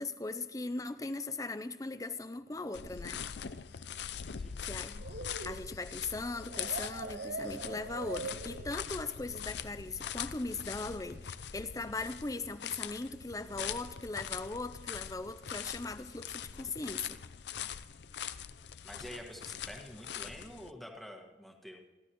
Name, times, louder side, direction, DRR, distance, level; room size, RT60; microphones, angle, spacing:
voice 1, 0.0-3.2 4.6-5.1 5.4-17.2, left 3 dB, 20° left, 0.5 m, -39 dB
sound 1, 2.7-20.7, left 8 dB, 65° left, 0.5 m, -43 dB
voice 2, 4.2-4.9 17.6-17.7 18.8-21.8, equal, ahead, 1.6 m, -48 dB
sound 2, 5.0-9.1, right 3 dB, 60° right, 0.6 m, -43 dB
26.5 x 12.0 x 3.0 m
head